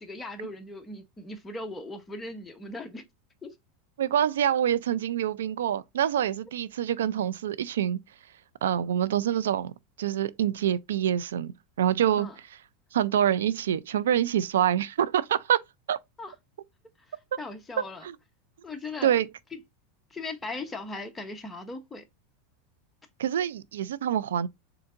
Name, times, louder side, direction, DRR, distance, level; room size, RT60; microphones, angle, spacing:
voice 1, 0.0-3.0 3.4-3.5 12.2-12.4 16.2-16.3 17.4-18.1 18.6-19.2 19.5-19.6 20.1-22.0, left 2 dB, 15° left, 0.9 m, -38 dB
voice 2, 4.0-8.0 8.6-9.7 10.0-11.5 11.8-12.3 12.9-15.6 15.9-16.0 18.0-18.1 19.0-19.3 23.2-24.5, right 10 dB, 90° right, 0.3 m, -26 dB
4.4 x 3.7 x 2.5 m
supercardioid pair, 120°, 0 cm